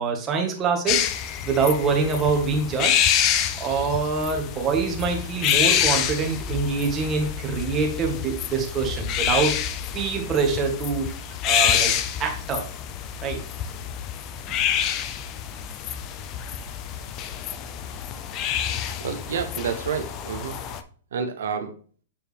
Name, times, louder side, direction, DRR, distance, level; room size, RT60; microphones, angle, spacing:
voice 1, 0.0-3.0 3.6-9.6 9.9-11.2 11.4-11.9 12.2-12.7 13.2-13.4, right 5 dB, 20° right, 1 dB, 1.5 m, -25 dB
sound 1, 0.9-20.8, left 9 dB, 30° left, 0.5 m, -27 dB
voice 2, 19.0-20.6 21.1-21.7, right 6 dB, 80° right, 7 dB, 0.8 m, -29 dB
7.1 x 4.4 x 3.4 m, 0.43 s
hypercardioid pair, 150°, 0 cm